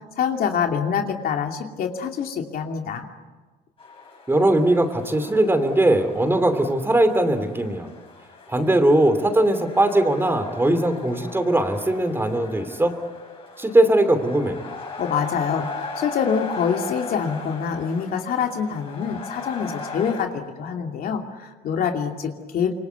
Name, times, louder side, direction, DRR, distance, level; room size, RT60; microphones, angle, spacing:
voice 1, 0.2-3.1 15.0-22.7, left 7 dB, 60° left, 3 dB, 2.7 m, -25 dB
sound 1, 3.8-20.3, left 4 dB, 35° left, 6.3 m, -38 dB
voice 2, 4.3-7.9 8.5-12.9 13.6-14.6, right 1 dB, 15° right, 9 dB, 2.9 m, -20 dB
26.5 x 24.0 x 8.2 m, 1.3 s
cardioid pair, 110°, 17 cm